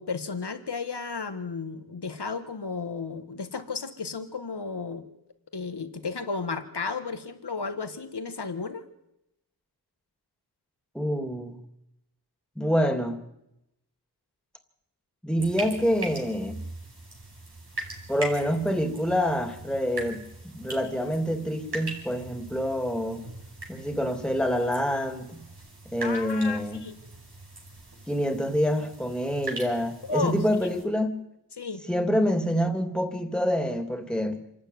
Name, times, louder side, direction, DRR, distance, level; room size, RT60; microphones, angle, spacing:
voice 1, 0.0-5.0 5.5-8.9 26.0-26.9 30.1-30.4 31.6-31.8, left 4 dB, 85° left, 9 dB, 1.8 m, -33 dB
voice 2, 10.9-11.6 12.6-13.2 15.2-16.6 18.1-23.2 23.7-25.4 25.9-26.8 28.1-31.1 31.9-34.4, equal, ahead, 7 dB, 2.9 m, -26 dB
sound 1, 15.4-30.8, right 2 dB, 80° right, 5.4 m, -41 dB
26.5 x 12.5 x 9.5 m, 0.86 s
wide cardioid pair, 45°, 39 cm